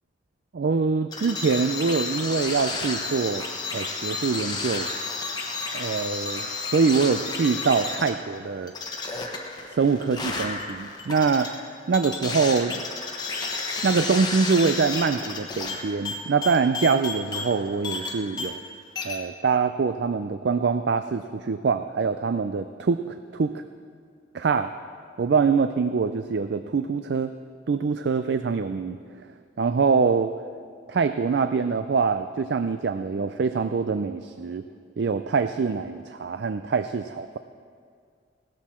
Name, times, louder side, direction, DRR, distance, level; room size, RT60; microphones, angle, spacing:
voice 1, 0.5-3.4 3.7-4.9 5.7-6.5 6.7-8.7 9.7-11.5 11.9-12.8 13.8-18.6 19.0-23.6 24.3-24.7 25.2-27.3 27.7-29.0 29.6-30.3 30.9-34.6 35.0-37.4, right 5 dB, 60° right, 10 dB, 0.4 m, -24 dB
sound 1, 1.1-18.7 19.0-19.2, left 3 dB, 20° left, 1.0 m, -32 dB
17.0 x 13.0 x 4.4 m, 2.1 s
head